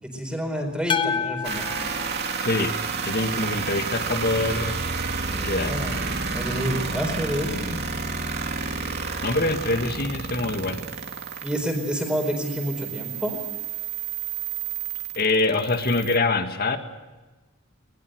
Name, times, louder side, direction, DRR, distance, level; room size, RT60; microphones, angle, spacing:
voice 1, 0.0-1.6 5.3-6.0 6.3-7.8 11.4-13.4, equal, 5° right, 3 dB, 4.5 m, -28 dB
sound 1, 0.9-3.2, left 6 dB, 25° left, 0.9 m, -29 dB
sound 2, 1.4-16.2, right 5 dB, 50° right, 2.7 m, -30 dB
voice 2, 2.4-2.7 3.1-4.8 5.4-5.8 9.2-10.8 15.2-16.8, left 2 dB, 45° left, 7 dB, 1.9 m, -24 dB
22.0 x 20.5 x 8.0 m, 1.2 s
head